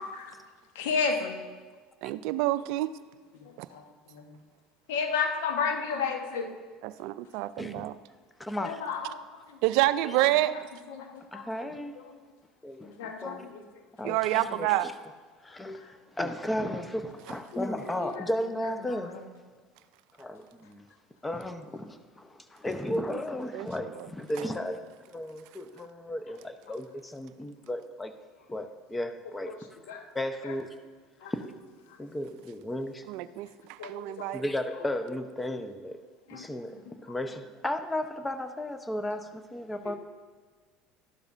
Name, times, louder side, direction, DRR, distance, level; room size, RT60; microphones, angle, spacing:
voice 1, 0.7-1.4 3.4-3.8 4.1-4.4 4.9-6.5 8.6-9.4 10.5-10.6 10.9-11.4 12.0-12.2 12.8-13.6 18.0-18.3 18.6-19.2 29.5-29.6 29.9-30.0 30.4-30.5 31.2-31.3 33.8-34.3 36.3-36.5 39.8-39.9, left 5 dB, 75° left, 4 dB, 1.3 m, -33 dB
voice 2, 2.0-2.9 3.6-3.7 6.8-7.9 9.6-10.6 14.1-14.9 22.9-23.2 23.5-23.7 33.1-34.4, right 16 dB, 65° right, 15 dB, 0.4 m, -28 dB
voice 3, 7.6-7.9 8.4-8.8 10.2-10.3 11.3-11.9 12.6-13.5 14.0-14.9 15.4-19.1 20.2-20.8 21.2-28.1 28.5-29.6 30.1-30.8 31.3-31.5 32.0-33.0 34.3-36.0 36.3-40.0, left 1 dB, 15° left, 9 dB, 0.9 m, -34 dB
12.5 x 12.0 x 2.6 m, 1.5 s
hypercardioid pair, 75°, 0 cm